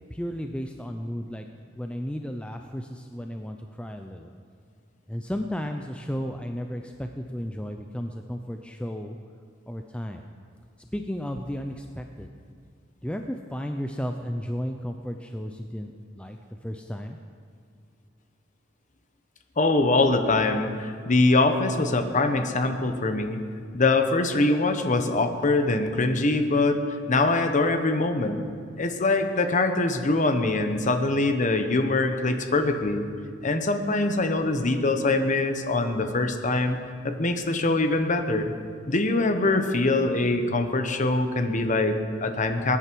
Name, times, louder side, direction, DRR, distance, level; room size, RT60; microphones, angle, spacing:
voice 1, 0.1-1.5 1.7-4.3 5.1-9.2 9.7-10.2 10.9-12.3 13.0-17.2, equal, 5° left, 4 dB, 0.5 m, -33 dB
voice 2, 19.6-23.4 23.7-26.8 27.1-28.5 28.8-33.1 33.4-36.8 37.0-38.4 38.9-42.8, left 2 dB, 40° left, 7 dB, 1.0 m, -23 dB
20.0 x 9.9 x 4.6 m, 2.1 s
head